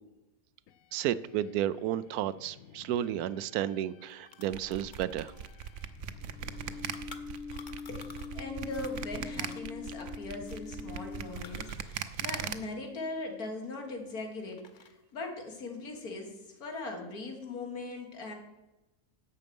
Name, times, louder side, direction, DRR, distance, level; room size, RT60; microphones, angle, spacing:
sound 1, 0.7-11.7, left 5 dB, 70° left, 1.0 m, -46 dB
voice 1, 0.9-5.3, right 11 dB, 90° right, 16 dB, 1.1 m, -32 dB
sound 2, 3.7-3.8 4.0-8.4 8.7-12.7 13.0-14.1 14.5-15.1, left 5 dB, 40° left, 0.8 m, -53 dB
sound 3, 4.5-12.5, right 8 dB, 60° right, 1.0 m, -39 dB
voice 2, 7.9-18.3, left 3 dB, 90° left, 2 dB, 2.4 m, -40 dB
11.0 x 7.7 x 5.3 m, 0.98 s
omnidirectional pair, 1.5 m